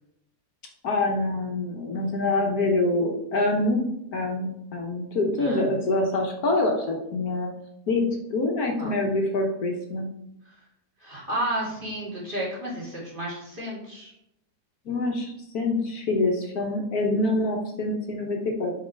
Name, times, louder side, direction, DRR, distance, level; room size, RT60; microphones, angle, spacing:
voice 1, 0.8-7.5 7.9-8.0 8.3-10.1 14.8-18.7, left 2 dB, 65° left, 1 dB, 1.5 m, -25 dB
voice 2, 5.4-5.7 8.8-9.0 10.4-10.6 11.0-14.1, right 1 dB, 30° right, -5 dB, 2.4 m, -32 dB
5.9 x 5.6 x 4.6 m, 0.79 s
omnidirectional pair, 1.8 m